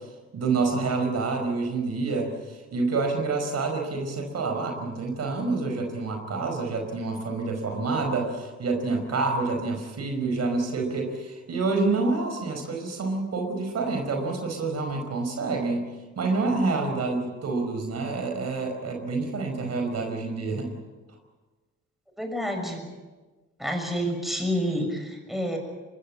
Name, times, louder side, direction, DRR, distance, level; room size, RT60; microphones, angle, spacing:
voice 1, 0.3-15.8 16.2-20.7, right 3 dB, 55° right, 3 dB, 4.9 m, -28 dB
voice 2, 22.2-22.8 23.6-25.6, equal, ahead, 3 dB, 6.6 m, -28 dB
24.5 x 21.5 x 7.6 m, 1.3 s
cardioid pair, 90°, 30 cm